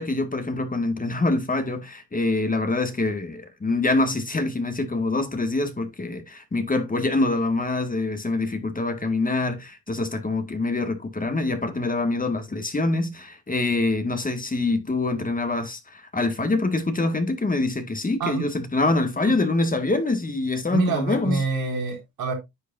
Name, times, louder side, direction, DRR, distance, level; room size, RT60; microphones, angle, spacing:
voice 1, 0.0-21.4, left 2 dB, 20° left, 1.9 m, -25 dB
voice 2, 20.7-22.3, right 4 dB, 65° right, 4.5 m, -27 dB
10.5 x 6.6 x 2.7 m
supercardioid pair, 75°, 39 cm